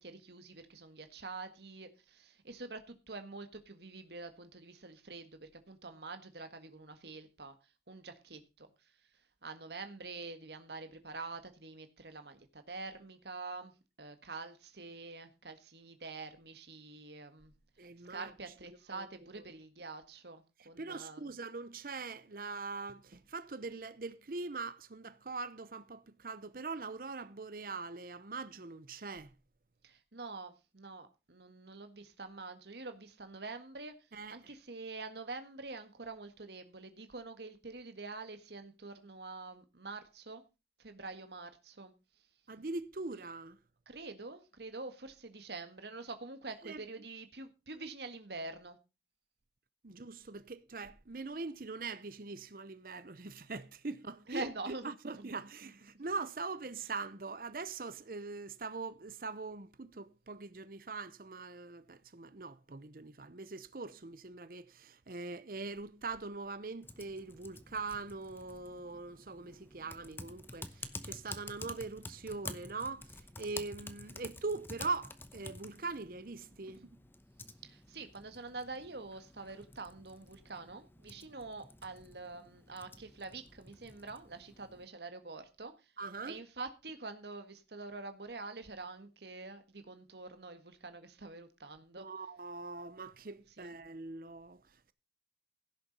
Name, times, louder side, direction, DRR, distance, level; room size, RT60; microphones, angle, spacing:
voice 1, 0.0-7.5 7.9-8.9 9.4-13.7 14.0-17.5 17.8-21.3 29.8-33.9 34.3-40.4 40.8-41.9 43.8-48.8 54.3-55.3 76.8-76.9 77.6-85.9 86.2-92.1 93.6-93.8, right 3 dB, 70° right, 1.7 m, -46 dB
voice 2, 17.8-18.3 18.9-19.1 20.6-29.3 34.1-34.4 42.5-43.6 46.6-46.8 49.8-76.8 86.0-86.4 92.0-94.9, right 3 dB, 55° right, 0.8 m, -42 dB
Typing, 66.8-84.9, left 2 dB, 10° left, 0.9 m, -50 dB
16.0 x 6.9 x 5.4 m
head